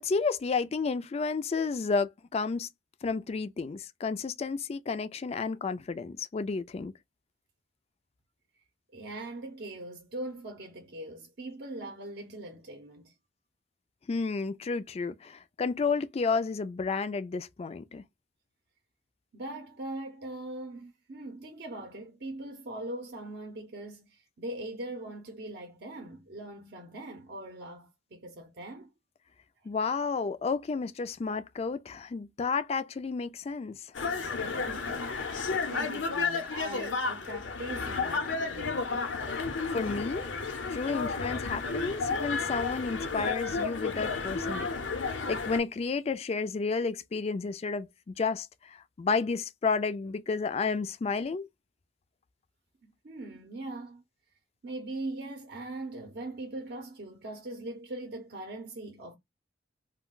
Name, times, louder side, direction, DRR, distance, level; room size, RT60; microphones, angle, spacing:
voice 1, 0.0-2.7 3.0-6.9 14.1-18.0 29.7-33.8 39.7-40.3 40.7-44.7 45.3-51.5, left 4 dB, 35° left, 0.3 m, -31 dB
voice 2, 8.9-13.1 19.3-28.9 34.4-39.2 52.8-54.0 54.6-59.2, right 2 dB, 60° right, 0.6 m, -41 dB
sound 1, 33.9-45.6, left 4 dB, 85° left, 0.7 m, -32 dB
2.3 x 2.2 x 3.6 m
head